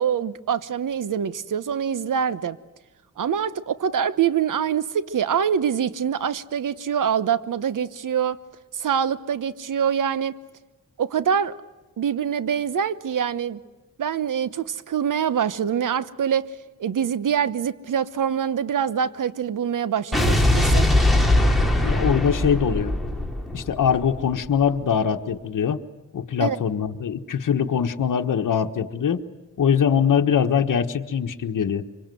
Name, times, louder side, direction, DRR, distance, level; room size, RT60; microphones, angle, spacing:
voice 1, 0.0-2.6 3.2-8.4 8.7-10.3 11.0-11.5 12.0-13.6 14.0-16.5 16.8-20.9 26.4-26.6, right 8 dB, 75° right, 15 dB, 1.1 m, -24 dB
Explosion, 20.1-24.5, left 1 dB, ahead, 3.5 m, -21 dB
voice 2, 21.8-22.9 23.5-25.8 26.1-29.2 29.6-31.9, left 7 dB, 75° left, 5 dB, 1.4 m, -22 dB
25.5 x 24.5 x 7.8 m, 1.2 s
cardioid pair, 85°, 32 cm